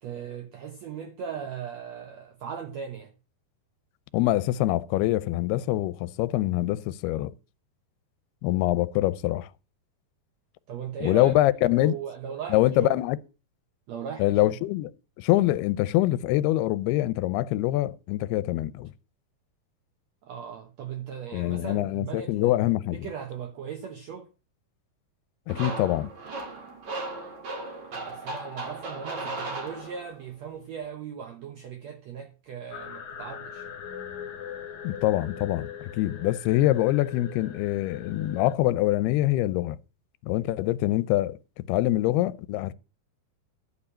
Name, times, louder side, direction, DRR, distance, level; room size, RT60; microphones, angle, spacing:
voice 1, 0.0-3.1 10.7-11.3 11.7-13.0 13.9-14.6 20.2-22.6 22.9-24.3 27.8-33.8, right 7 dB, 85° right, 1.5 m, -38 dB
voice 2, 4.1-7.3 8.4-9.5 11.0-12.0 12.5-13.2 14.2-14.9 15.2-18.9 21.3-23.1 25.5-26.1 34.8-39.8 40.3-42.7, left 15 dB, 85° left, 2.7 m, -24 dB
sound 1, 25.5-30.3, right 2 dB, 45° right, 3.7 m, -36 dB
sound 2, 32.7-38.5, left 8 dB, 60° left, 2.3 m, -40 dB
12.0 x 4.8 x 8.5 m
omnidirectional pair, 4.5 m